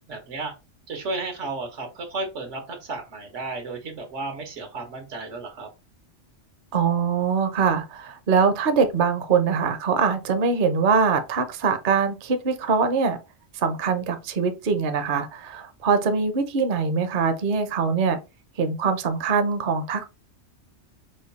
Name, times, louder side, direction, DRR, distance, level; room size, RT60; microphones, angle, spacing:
voice 1, 0.1-0.5 0.9-5.7, right 3 dB, 85° right, 1.5 m, -33 dB
voice 2, 6.7-13.2 13.5-18.2 18.6-20.0, right 5 dB, 50° right, 0.8 m, -23 dB
5.0 x 2.2 x 4.0 m
omnidirectional pair, 1.2 m